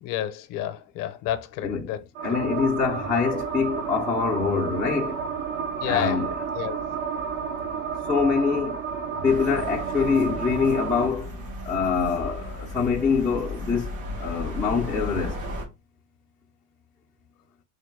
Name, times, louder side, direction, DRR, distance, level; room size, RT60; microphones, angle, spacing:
voice 1, 0.0-2.0 5.8-6.2 6.5-6.8, left 12 dB, 50° left, 0.6 m, -30 dB
voice 2, 1.6-2.0 2.2-5.2 5.8-6.4 8.1-8.9 9.2-13.9 14.2-15.4, left 5 dB, ahead, 0.3 m, -25 dB
sound 1, 2.1-11.1, right 6 dB, 50° right, 0.7 m, -31 dB
sound 2, 9.2-15.6, left 1 dB, 80° right, 1.7 m, -35 dB
3.8 x 2.5 x 3.5 m
supercardioid pair, 125°, 44 cm